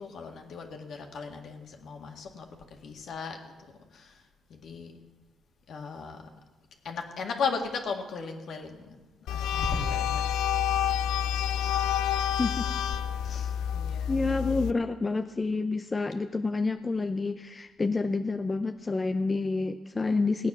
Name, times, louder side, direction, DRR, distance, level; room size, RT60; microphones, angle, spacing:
voice 1, 0.0-2.5 2.8-3.4 3.9-4.2 4.5-4.9 5.7-6.3 6.8-9.0 9.3-10.4 13.2-14.2, left 4 dB, 65° left, 3 dB, 2.1 m, -36 dB
sound 1, 9.3-14.7, left 9 dB, 90° left, 0.5 m, -28 dB
voice 2, 14.1-20.5, left 3 dB, 25° left, 7 dB, 0.6 m, -28 dB
17.5 x 9.2 x 6.2 m, 1.2 s
cardioid pair, 90°, 0 cm